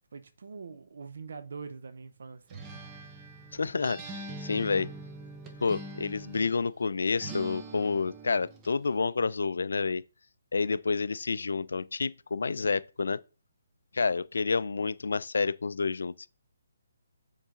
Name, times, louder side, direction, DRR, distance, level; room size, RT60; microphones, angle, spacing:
voice 1, 0.1-2.8, right 5 dB, 65° right, 0.6 m, -44 dB
Acoustic guitar, 2.5-6.6 7.2-8.8, right 2 dB, 20° right, 0.8 m, -43 dB
voice 2, 3.5-4.9 5.6-10.0 10.5-13.2 13.9-16.3, left 4 dB, 75° left, 0.4 m, -29 dB
7.1 x 3.9 x 3.7 m
hypercardioid pair, 155°, 0 cm